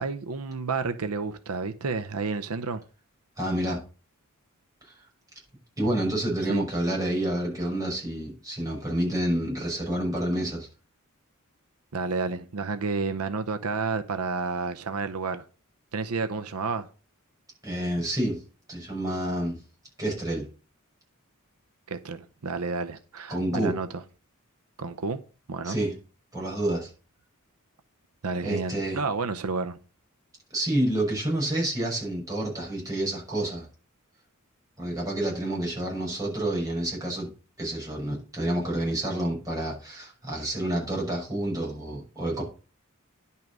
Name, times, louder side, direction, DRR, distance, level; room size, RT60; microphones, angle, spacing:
voice 1, 0.0-2.8 6.5-6.6 11.9-15.4 15.9-16.9 21.9-24.0 24.8-25.2 25.5-25.8 28.2-29.8, right 4 dB, 85° right, 0.7 m, -30 dB
voice 2, 3.4-3.8 4.8-5.0 5.8-10.7 17.6-18.4 18.7-19.6 20.0-20.5 23.3-23.7 25.6-25.9 26.3-26.9 28.4-29.0 30.5-33.7 34.8-37.3 37.6-42.4, right 1 dB, 15° right, 6.1 m, -28 dB
10.5 x 5.6 x 6.2 m
head